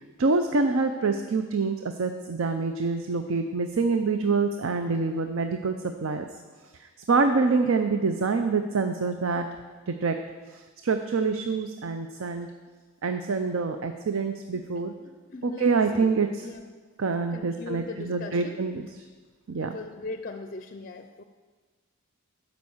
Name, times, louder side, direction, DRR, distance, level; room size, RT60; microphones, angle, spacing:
voice 1, 0.2-6.3 6.8-9.5 9.9-10.2 10.5-12.5 13.0-14.9 15.4-16.5 17.0-18.8 19.5-19.8, right 4 dB, 70° right, 7 dB, 0.5 m, -26 dB
voice 2, 14.5-15.7 16.4-16.7 17.3-18.6 19.5-21.2, left 3 dB, 40° left, 7 dB, 0.4 m, -40 dB
12.0 x 5.2 x 7.2 m, 1.4 s
head